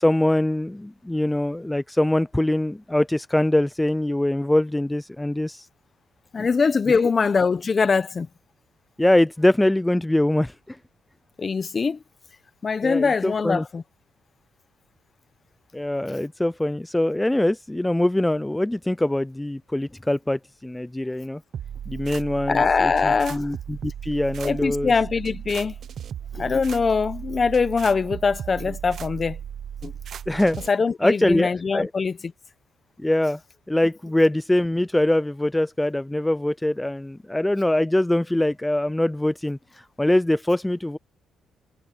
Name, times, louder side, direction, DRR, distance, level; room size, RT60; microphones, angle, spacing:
voice 1, 0.0-5.7 9.0-10.8 12.8-13.6 15.7-21.4 21.9-24.9 30.3-30.6 31.0-31.9 33.0-33.4 33.7-41.0, left 1 dB, 10° left, 0.4 m, -23 dB
voice 2, 6.3-8.3 11.4-12.0 12.6-13.8 22.5-23.5 24.4-25.8 26.3-29.4 29.8-29.9 30.7-32.3, left 5 dB, 35° left, 1.3 m, -22 dB
sound 1, 21.5-30.7, right 8 dB, 60° right, 1.1 m, -36 dB
cardioid pair, 90°, 0 cm